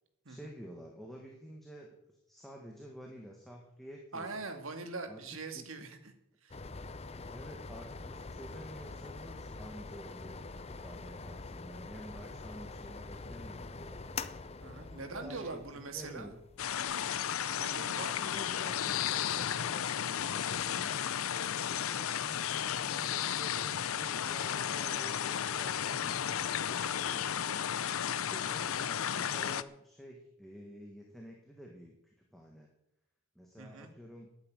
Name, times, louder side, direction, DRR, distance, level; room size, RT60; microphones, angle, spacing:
voice 1, 0.3-1.9 2.3-4.4 5.1-5.2 5.5-5.7 7.3-14.2 15.0-16.4 17.9-21.1 21.5-27.8 28.2-31.9 32.3-32.7 33.4-34.3, equal, ahead, -1 dB, 1.8 m, -50 dB
voice 2, 4.1-6.1 6.4-6.6 14.6-16.3 17.5-18.4 33.6-33.9, right 3 dB, 70° right, 6 dB, 2.0 m, -42 dB
sound 1, 6.5-18.9, left 3 dB, 30° left, 0.6 m, -45 dB
sound 2, 16.6-29.6, left 9 dB, 80° left, 0.6 m, -33 dB
11.5 x 9.4 x 9.3 m, 0.83 s
head